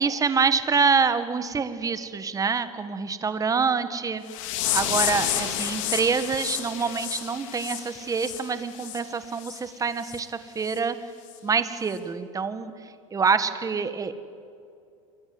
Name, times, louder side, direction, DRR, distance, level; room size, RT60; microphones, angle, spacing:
voice 1, 0.0-4.2 4.7-11.0 11.4-12.7 13.1-14.1, right 5 dB, 20° right, 11 dB, 1.8 m, -26 dB
sound 1, 4.3-9.0 9.4-9.6 10.0-10.2 10.7-10.8 11.3-11.4, left 11 dB, 70° left, 3.7 m, -30 dB
28.0 x 24.5 x 8.0 m, 2.5 s
supercardioid pair, 115°, 17 cm